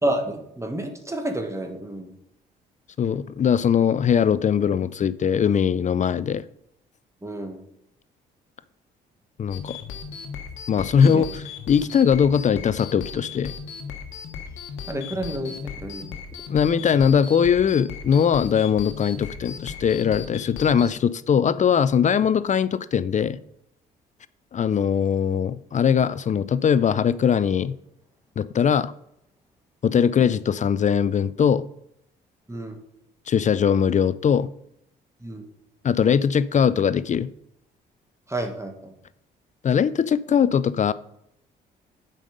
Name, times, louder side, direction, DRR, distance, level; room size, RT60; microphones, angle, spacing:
voice 1, 0.0-2.1 7.2-7.6 11.0-11.2 14.9-16.1 32.5-32.8 35.2-35.4 38.3-38.9, right 1 dB, 15° right, 1.5 m, -29 dB
voice 2, 3.0-6.4 9.4-9.8 10.7-13.5 16.5-23.4 24.5-27.7 28.4-28.9 29.8-31.6 33.3-34.5 35.8-37.3 39.6-40.9, left 7 dB, 35° left, 0.4 m, -21 dB
sound 1, 9.5-20.9, left 6 dB, 70° left, 1.2 m, -37 dB
7.5 x 5.3 x 5.2 m
supercardioid pair, 55°, 21 cm